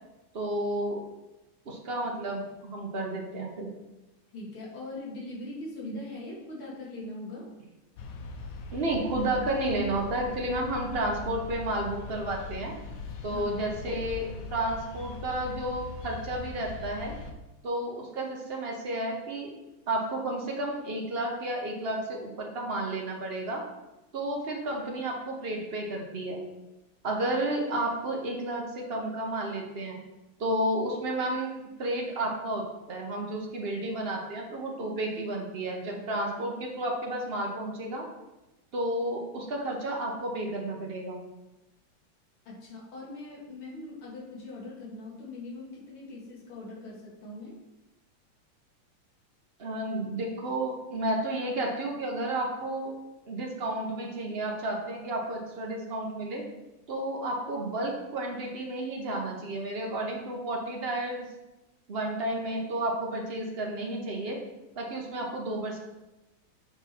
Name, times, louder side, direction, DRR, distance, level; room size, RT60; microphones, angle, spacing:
voice 1, 0.3-1.0 1.7-3.7 5.8-6.0 8.7-12.8 13.2-17.1 17.6-19.5 19.9-23.6 24.1-26.4 27.0-30.0 30.4-31.5 31.8-38.1 38.7-41.2 49.6-52.9 53.3-56.4 56.9-61.3 61.9-64.4 64.8-65.8, right 1 dB, 40° right, 0 dB, 0.9 m, -32 dB
voice 2, 4.3-7.5 13.3-13.6 42.5-47.6, left 2 dB, 90° left, -4 dB, 2.7 m, -41 dB
sound 1, 8.0-17.3, left 4 dB, 65° left, 0.8 m, -40 dB
7.0 x 4.4 x 4.4 m, 1.0 s
omnidirectional pair, 2.3 m